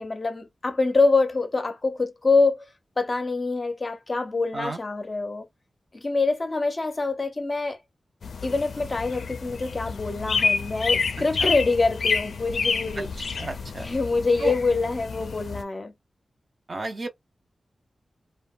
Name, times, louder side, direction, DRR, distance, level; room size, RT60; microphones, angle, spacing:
voice 1, 0.0-2.7 3.0-5.5 5.9-7.8 8.4-13.1 13.8-15.9, left 3 dB, 30° left, 0.5 m, -25 dB
sound 1, 8.2-15.6, left 5 dB, 85° left, 0.4 m, -29 dB
voice 2, 13.0-13.9 14.4-14.5 16.7-17.1, right 2 dB, 35° right, 0.5 m, -32 dB
2.7 x 2.2 x 2.3 m
wide cardioid pair, 160°, 0 cm